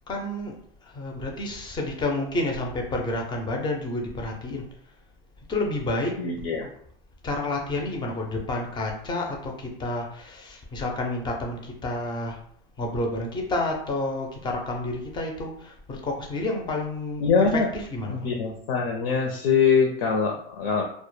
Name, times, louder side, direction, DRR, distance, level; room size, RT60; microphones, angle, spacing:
voice 1, 0.1-4.6 5.5-6.5 7.2-12.4 12.8-18.3, left 2 dB, 15° left, 1 dB, 0.4 m, -30 dB
voice 2, 6.2-6.7 17.2-17.7 18.1-20.8, left 5 dB, 75° left, 1 dB, 0.5 m, -23 dB
2.1 x 2.0 x 3.0 m, 0.64 s
supercardioid pair, 125°, 30 cm